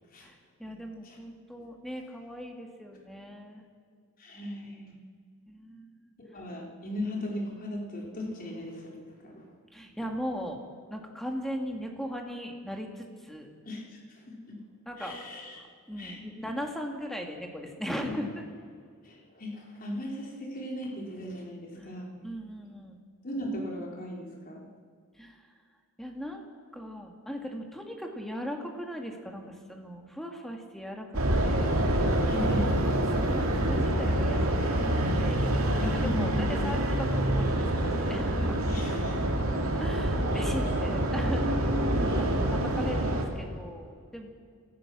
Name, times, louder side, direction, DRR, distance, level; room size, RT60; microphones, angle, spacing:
voice 1, 0.6-3.7 5.5-6.1 9.7-10.6 10.9-13.5 14.9-15.2 15.6-18.4 21.8-21.9 22.2-23.0 25.2-25.4 26.0-26.5 26.7-31.1 31.4-31.8 32.8-35.5 35.8-38.6 39.8-41.7 41.9-44.3, equal, ahead, 2 dB, 2.3 m, -38 dB
voice 2, 4.2-5.0 6.2-9.5 13.7-14.6 15.0-15.6 16.0-16.3 18.0-18.2 19.0-22.2 23.2-24.7 32.3-32.7 35.8-36.7 38.6-39.3 40.3-40.8 41.2-41.3 42.1-42.3, left 1 dB, 40° left, -1 dB, 3.9 m, -38 dB
sound 1, 31.1-43.2, right 1 dB, 70° right, 2.9 m, -26 dB
27.0 x 16.5 x 6.3 m, 2.1 s
head